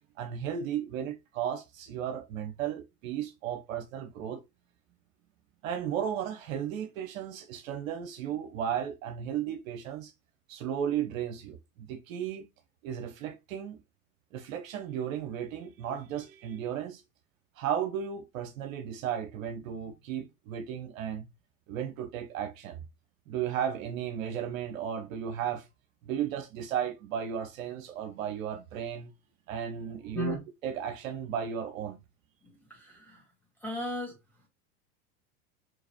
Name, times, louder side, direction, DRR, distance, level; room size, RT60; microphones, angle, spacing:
voice 1, 0.2-4.4 5.6-10.1 10.5-12.5 12.8-13.8 14.3-17.0 17.6-21.3 21.7-22.8 23.3-25.7 26.0-29.1 29.5-30.4 30.6-32.0, right 9 dB, 65° right, 0.7 m, -34 dB
voice 2, 32.4-33.3 33.6-34.5, left 1 dB, 5° left, 1.8 m, -37 dB
3.9 x 2.8 x 2.7 m
hypercardioid pair, 90°, 44 cm